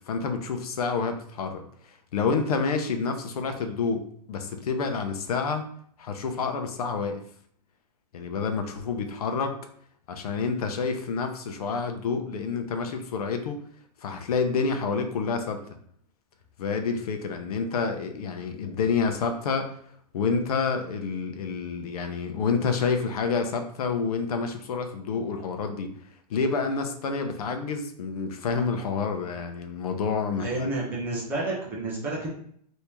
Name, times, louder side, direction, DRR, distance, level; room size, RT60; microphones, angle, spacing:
voice 1, 0.1-1.7 2.1-4.0 4.3-5.6 6.0-7.2 8.1-9.5 10.1-13.6 14.0-15.6 16.6-19.7 20.1-25.9 26.3-30.7, left 5 dB, 65° left, 6 dB, 0.7 m, -28 dB
voice 2, 30.4-32.3, right 2 dB, 10° right, -4 dB, 0.5 m, -30 dB
3.4 x 2.7 x 3.0 m, 0.64 s
supercardioid pair, 175°, 21 cm